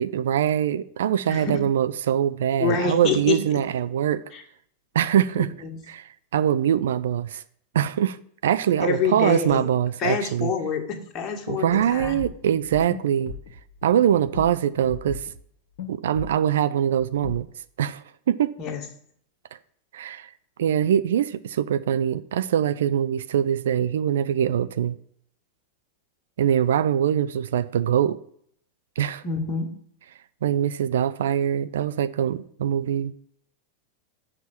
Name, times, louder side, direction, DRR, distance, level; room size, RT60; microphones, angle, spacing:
voice 1, 0.0-4.2 4.9-5.5 5.9-7.4 7.7-8.2 8.4-10.5 11.5-13.3 13.8-15.2 15.9-17.5 17.8-18.5 19.9-20.3 20.6-25.0 26.4-28.2 29.0-29.2 30.4-33.2, right 9 dB, 60° right, 0.4 m, -23 dB
voice 2, 2.6-3.6 4.3-4.4 5.6-5.8 8.8-9.7 10.0-12.2 18.6-18.8 29.2-29.7, left 5 dB, 30° left, 1.7 m, -27 dB
sound 1, 11.7-15.4 15.8-15.9 16.1-16.5 16.9-17.6, left 6 dB, 55° left, 1.3 m, -39 dB
7.2 x 5.8 x 7.6 m
figure-of-eight pair, 90°, 0 cm